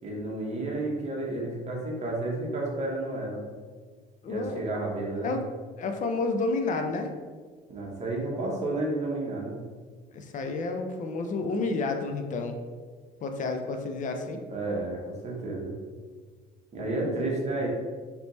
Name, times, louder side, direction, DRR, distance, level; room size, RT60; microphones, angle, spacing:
voice 1, 0.0-3.4 4.3-5.3 7.7-9.6 14.5-15.8 16.7-17.7, right 2 dB, 40° right, -2 dB, 1.1 m, -31 dB
voice 2, 4.2-4.7 5.2-5.4 5.8-7.1 10.1-12.6 13.2-14.4 16.8-17.4, left 3 dB, 50° left, 5 dB, 0.5 m, -30 dB
3.3 x 3.0 x 4.0 m, 1.5 s
cardioid pair, 110°, 17 cm